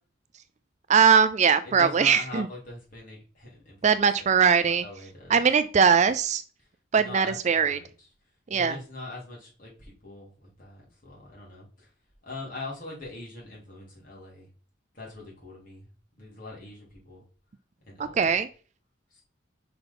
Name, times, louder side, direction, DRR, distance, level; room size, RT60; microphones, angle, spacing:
voice 1, 0.9-2.5 3.8-4.8 5.3-6.4 6.9-7.8 8.5-8.8 18.1-18.5, right 6 dB, 35° right, 12 dB, 0.4 m, -21 dB
voice 2, 1.6-4.3 4.6-5.4 6.9-8.1 8.5-11.9 12.2-14.5 14.9-17.2 17.9-18.3 19.1-19.2, left 2 dB, 45° left, -3 dB, 3.2 m, -42 dB
5.7 x 4.0 x 5.4 m, 0.39 s
head